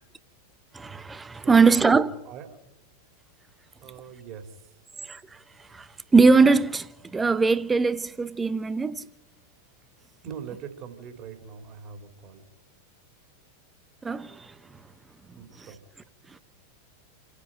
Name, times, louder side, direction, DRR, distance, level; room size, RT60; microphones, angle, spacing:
voice 1, 0.7-2.1 5.0-5.2 5.7-5.9 6.1-9.0 14.0-14.5, right 4 dB, 15° right, 0.9 m, -21 dB
voice 2, 1.3-2.8 3.8-4.8 10.2-12.4 15.3-15.8, right 7 dB, 35° right, 3.6 m, -43 dB
28.5 x 10.0 x 9.1 m
figure-of-eight pair, 90°, 0 cm